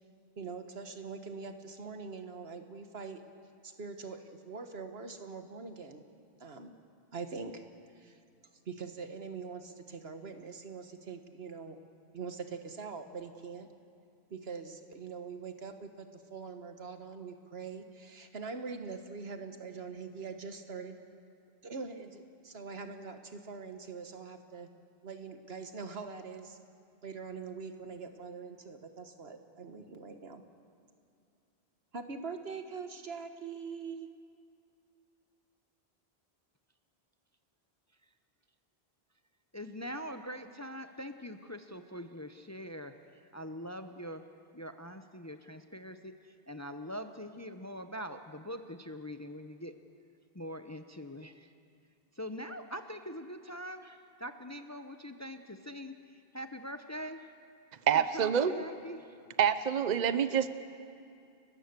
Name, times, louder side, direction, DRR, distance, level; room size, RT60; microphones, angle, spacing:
voice 1, 0.4-3.2 3.6-6.0 6.4-6.7 7.1-7.6 8.0-8.2 8.7-11.8 12.1-13.7 14.3-21.0 21.6-24.7 25.0-26.6 27.0-30.4 31.9-34.1, right 5 dB, 75° right, 7 dB, 1.6 m, -43 dB
voice 2, 39.5-42.9 43.3-44.2 44.5-46.1 46.5-49.7 50.3-51.5 52.2-55.9 56.3-57.3 57.9-59.1, equal, 20° left, 8 dB, 0.7 m, -43 dB
voice 3, 57.9-58.5 59.4-60.5, right 8 dB, 45° right, 12 dB, 0.8 m, -26 dB
30.0 x 15.0 x 6.7 m, 2.5 s
omnidirectional pair, 1.1 m